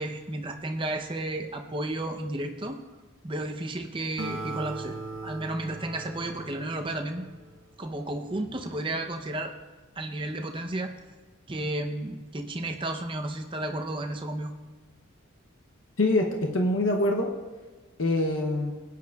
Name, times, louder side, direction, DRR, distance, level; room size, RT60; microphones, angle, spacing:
voice 1, 0.0-2.8 3.2-5.0 5.2-7.2 7.8-9.5 10.0-10.9 11.5-14.5, right 1 dB, 25° right, 4 dB, 0.7 m, -32 dB
Acoustic guitar, 4.2-7.8, right 2 dB, 70° right, 0.8 m, -39 dB
voice 2, 16.0-17.3 18.0-18.7, left 2 dB, 65° left, 2 dB, 0.8 m, -24 dB
17.5 x 9.5 x 2.4 m, 1.3 s
head